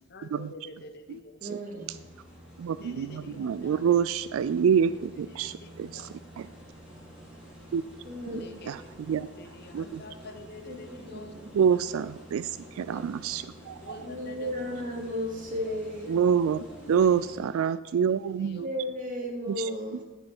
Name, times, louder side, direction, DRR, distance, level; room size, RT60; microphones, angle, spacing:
voice 1, 0.1-1.4 2.8-3.8 4.9-5.0 5.4-6.2 8.2-8.7 9.4-11.3 12.3-13.1 13.8-14.7 15.7-16.1 16.7-17.2 18.4-18.7, left 3 dB, 50° left, 8 dB, 0.8 m, -47 dB
voice 2, 1.4-2.0 8.1-8.6 10.6-11.5 14.0-16.2 16.7-16.9 18.6-20.0, equal, 40° right, 0 dB, 2.1 m, -35 dB
sound 1, 1.8-17.4, equal, 5° right, 2.4 m, -49 dB
voice 3, 2.6-6.1 6.4-6.5 7.7-7.8 8.7-9.3 9.7-10.0 11.5-12.5 12.8-14.0 16.1-16.6 16.9-18.7 19.6-19.7, right 7 dB, 75° right, 15 dB, 0.3 m, -26 dB
10.0 x 5.4 x 6.0 m, 1.2 s
head